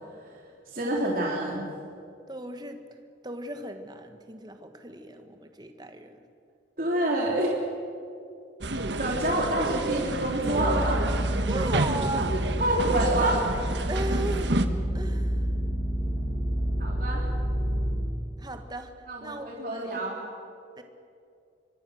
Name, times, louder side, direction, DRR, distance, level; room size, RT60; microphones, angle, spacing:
voice 1, 0.7-1.6 6.8-7.5 9.0-11.0 12.4-13.4 16.8-17.3 19.1-20.2, right 1 dB, 50° right, -3 dB, 3.4 m, -27 dB
voice 2, 2.3-2.8 3.2-6.2 11.5-12.4 13.9-14.5 14.9-15.5 18.4-18.9 19.2-20.0 20.8-20.9, right 2 dB, 25° right, 6 dB, 1.6 m, -36 dB
sound 1, 8.6-14.7, right 2 dB, 75° right, 1.4 m, -30 dB
sound 2, 10.4-17.9, equal, ahead, 5.8 m, -29 dB
25.5 x 23.0 x 6.5 m, 2.5 s
head